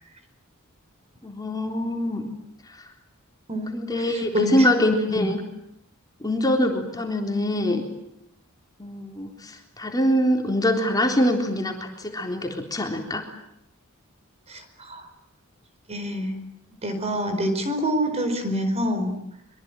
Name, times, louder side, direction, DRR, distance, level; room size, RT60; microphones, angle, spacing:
voice 1, 1.2-2.3 3.7-5.4 6.2-7.9 8.8-13.2, left 1 dB, 20° left, 2 dB, 3.7 m, -24 dB
voice 2, 3.5-4.7 5.1-5.3 14.5-15.1 15.9-16.4 16.8-19.1, equal, 30° right, 8 dB, 4.6 m, -27 dB
25.0 x 24.0 x 9.0 m, 0.78 s
head